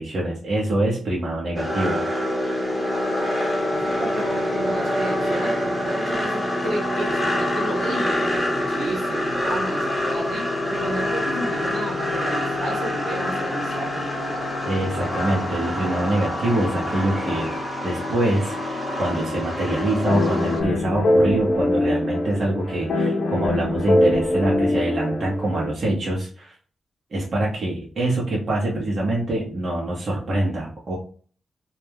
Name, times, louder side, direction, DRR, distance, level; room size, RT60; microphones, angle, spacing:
voice 1, 0.0-2.0 14.6-17.5 17.8-26.5 27.1-31.0, right 1 dB, 50° right, -4 dB, 0.7 m, -25 dB
sound 1, 1.6-20.6, left 1 dB, 20° left, 0.9 m, -26 dB
voice 2, 3.7-14.5, right 2 dB, 85° right, -3 dB, 0.7 m, -32 dB
sound 2, 20.1-25.7, left 1 dB, 70° left, 0.6 m, -22 dB
2.2 x 2.1 x 3.3 m, 0.43 s
cardioid pair, 70°, 0 cm